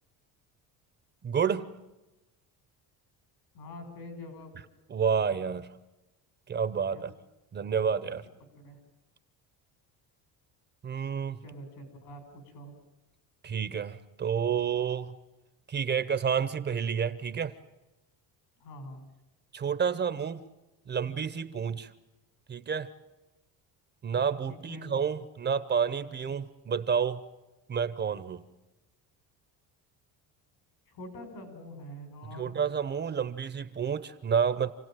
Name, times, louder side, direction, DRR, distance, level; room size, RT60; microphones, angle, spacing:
voice 1, 1.2-1.7 4.9-5.7 6.5-7.1 7.5-8.2 10.8-11.4 13.4-15.1 15.7-17.5 19.5-20.4 20.9-21.9 22.5-22.9 24.0-27.2 27.7-28.4 32.4-34.7, right 7 dB, 25° right, 13 dB, 0.8 m, -29 dB
voice 2, 3.5-4.5 6.9-7.0 8.5-8.8 11.4-12.7 18.6-19.0 24.5-24.9 30.9-32.6, left 1 dB, 70° left, 7 dB, 6.1 m, -45 dB
28.0 x 17.0 x 9.1 m, 1.0 s
cardioid pair, 155°, 38 cm